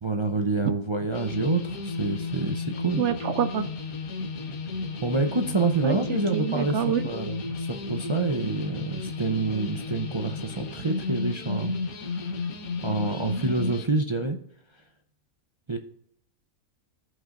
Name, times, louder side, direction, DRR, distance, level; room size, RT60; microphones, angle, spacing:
voice 1, 0.0-3.0 5.0-12.5 12.8-14.4 15.7-15.8, right 3 dB, 45° right, 4 dB, 0.3 m, -28 dB
sound 1, 1.1-13.9, left 4 dB, 90° left, 1.5 m, -33 dB
voice 2, 3.0-3.6 5.8-7.0, right 8 dB, 65° right, 10 dB, 0.8 m, -27 dB
14.5 x 5.4 x 2.5 m, 0.69 s
omnidirectional pair, 1.5 m